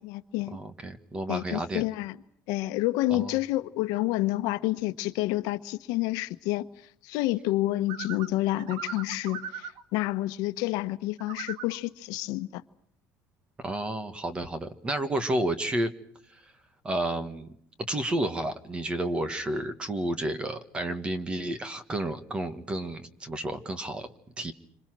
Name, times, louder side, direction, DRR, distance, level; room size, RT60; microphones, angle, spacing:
voice 1, 0.0-0.6 1.3-2.2 2.5-6.6 7.0-12.6, left 17 dB, 70° left, 1.2 m, -29 dB
voice 2, 0.5-1.8 3.1-3.4 13.6-15.9 16.8-17.5 17.9-24.5, right 1 dB, 15° right, 1.6 m, -31 dB
sound 1, 7.9-9.8 11.2-11.8, right 7 dB, 75° right, 1.8 m, -39 dB
27.5 x 26.5 x 6.2 m
cardioid pair, 170°, 7 cm